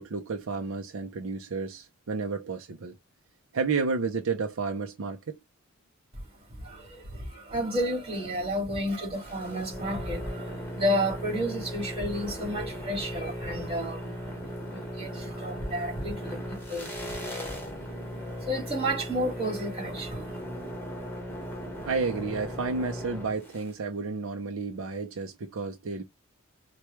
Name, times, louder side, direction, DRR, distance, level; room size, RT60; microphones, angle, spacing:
voice 1, 0.0-3.0 3.5-5.4 21.8-26.0, right 4 dB, 70° right, 0.5 m, -31 dB
voice 2, 6.1-20.4, equal, 25° right, 2.2 m, -32 dB
sound 1, 9.1-23.7, equal, 10° left, 1.3 m, -38 dB
4.6 x 2.2 x 3.0 m
head